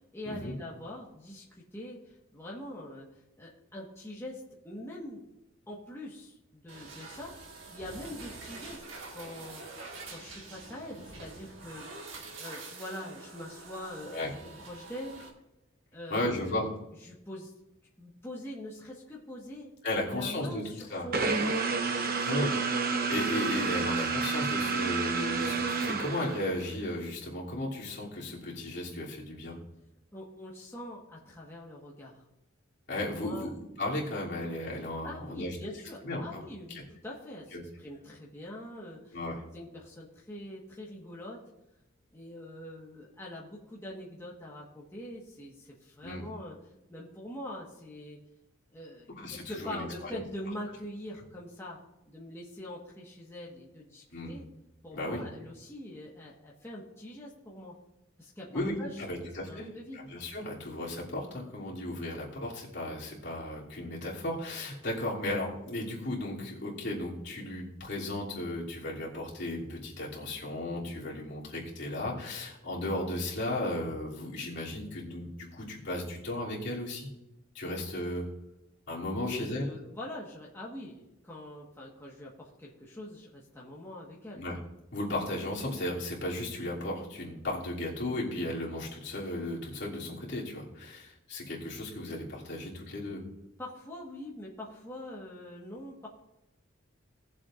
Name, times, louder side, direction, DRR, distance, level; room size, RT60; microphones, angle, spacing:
voice 1, 0.1-5.2 5.7-7.4 7.7-8.8 9.1-9.6 10.1-12.1 12.4-14.3 14.7-15.2 15.9-16.6 17.0-17.5 18.0-21.6 21.9-22.5 30.1-32.2 33.0-33.5 35.0-39.2 39.5-41.4 42.1-46.6 46.9-48.2 48.7-51.8 52.1-54.5 54.8-57.7 58.2-58.5 58.8-60.0 79.1-84.4 93.6-96.1, left 1 dB, 15° left, -5 dB, 1.4 m, -43 dB
sound 1, 6.7-15.3, right 3 dB, 75° right, 1.8 m, -46 dB
voice 2, 16.1-16.7 19.8-20.6 20.9-21.1 22.3-22.5 22.9-29.6 32.9-35.6 36.0-36.2 36.7-36.8 37.5-37.6 39.1-39.4 46.0-46.2 49.1-50.2 54.1-54.3 54.9-55.2 58.5-77.1 77.5-78.3 78.9-79.6 84.3-84.6 84.9-93.2, left 1 dB, 60° left, -5 dB, 2.9 m, -35 dB
sound 2, 21.1-26.7, right 4 dB, 45° right, 1.0 m, -30 dB
18.5 x 7.4 x 2.5 m, 0.92 s
head